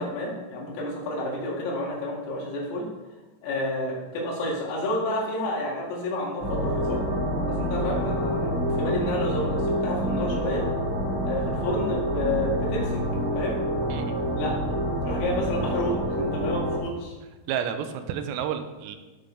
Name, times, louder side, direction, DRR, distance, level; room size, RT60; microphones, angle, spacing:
voice 1, 0.0-2.9 3.4-7.0 7.5-10.6 11.2-13.0 13.4-13.6 14.4-14.8 15.0-17.1, left 1 dB, 75° left, -3 dB, 4.7 m, -30 dB
sound 1, 6.4-16.8, equal, 25° right, 2.4 m, -27 dB
voice 2, 17.5-19.0, right 8 dB, 90° right, 8 dB, 3.4 m, -30 dB
14.5 x 6.4 x 3.3 m, 1.2 s
omnidirectional pair, 6.0 m